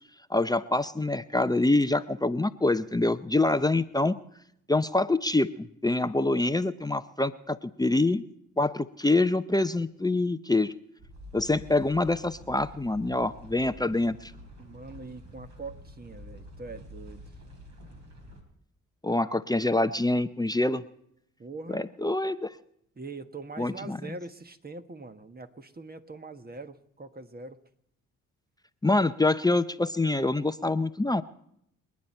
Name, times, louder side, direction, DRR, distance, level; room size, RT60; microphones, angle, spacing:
voice 1, 0.3-4.2 4.7-8.2 8.6-10.7 11.3-14.3 19.0-20.8 21.7-22.5 23.6-24.0 28.8-31.2, left 2 dB, 10° left, 11 dB, 0.6 m, -25 dB
sound 1, 11.0-18.4, left 1 dB, 55° right, 4.0 m, -47 dB
voice 2, 14.6-17.3 19.2-19.4 21.4-21.8 22.9-27.6, right 3 dB, 25° right, 9 dB, 1.4 m, -43 dB
28.5 x 9.7 x 4.4 m, 0.73 s
supercardioid pair, 55°, 34 cm